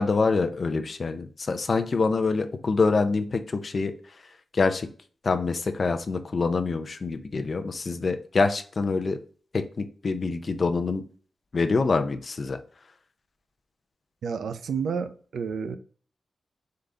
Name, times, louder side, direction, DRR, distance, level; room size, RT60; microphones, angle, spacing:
voice 1, 0.0-3.9 4.5-4.9 5.2-9.2 9.5-11.0 11.5-12.6, left 4 dB, 35° left, 7 dB, 0.5 m, -25 dB
voice 2, 14.2-15.8, right 6 dB, 90° right, 11 dB, 0.4 m, -30 dB
3.8 x 3.4 x 3.8 m, 0.44 s
wide cardioid pair, 165°, 0 cm